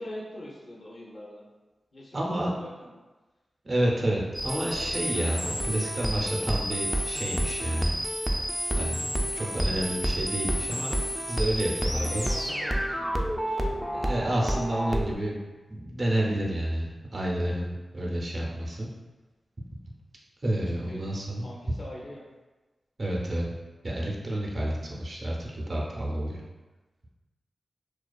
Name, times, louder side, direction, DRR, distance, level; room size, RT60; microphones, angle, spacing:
voice 1, 0.0-1.5 1.9-2.9 11.9-13.6 20.7-21.0 21.4-22.3, left 1 dB, 60° left, -3 dB, 0.6 m, -42 dB
voice 2, 2.1-2.5 3.6-7.9 8.7-10.9 11.3-12.2 13.9-15.4 15.7-18.9 20.4-21.4 23.0-23.5 23.8-26.4, right 1 dB, 50° right, -3 dB, 0.5 m, -29 dB
sound 1, 4.3-15.1, equal, ahead, 0.3 m, -29 dB
2.3 x 2.3 x 2.3 m, 1.2 s
cardioid pair, 45°, 0 cm